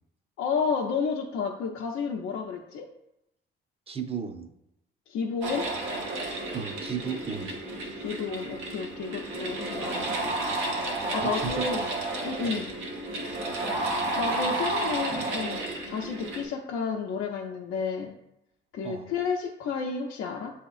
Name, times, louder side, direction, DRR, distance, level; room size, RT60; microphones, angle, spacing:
voice 1, 0.4-2.9 5.1-5.7 8.0-10.4 10.9-11.8 12.2-12.7 14.2-18.1 18.7-20.5, left 5 dB, 85° left, -1 dB, 0.5 m, -31 dB
voice 2, 3.9-4.5 6.5-7.6 11.2-11.9 12.4-12.6 18.8-19.1, right 7 dB, 30° right, 7 dB, 0.6 m, -35 dB
sound 1, 5.4-16.4, right 2 dB, 90° right, 0.9 m, -31 dB
7.7 x 2.8 x 2.4 m, 0.85 s
cardioid pair, 90°, 20 cm